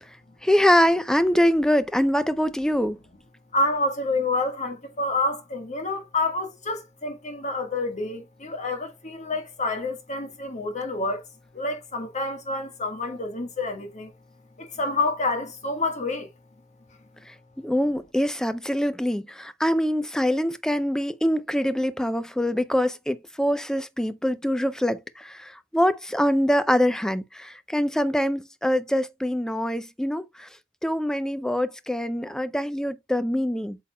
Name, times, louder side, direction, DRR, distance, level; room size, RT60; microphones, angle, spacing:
voice 1, 0.4-3.0 17.6-30.5 30.8-33.8, equal, 5° left, 0.4 m, -24 dB
voice 2, 3.5-11.2 11.5-14.1 14.6-16.3, left 2 dB, 35° left, 1.5 m, -28 dB
8.3 x 5.6 x 2.2 m
head